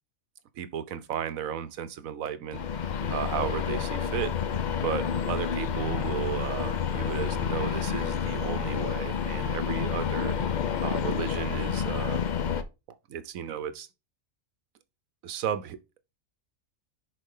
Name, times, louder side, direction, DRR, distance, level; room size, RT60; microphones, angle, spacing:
voice 1, 0.5-4.3 4.8-12.2 13.1-13.9 15.2-16.0, right 9 dB, 80° right, 1.2 m, -34 dB
sound 1, 2.5-12.6, left 7 dB, 50° left, 0.5 m, -29 dB
6.7 x 4.7 x 3.7 m
omnidirectional pair, 1.4 m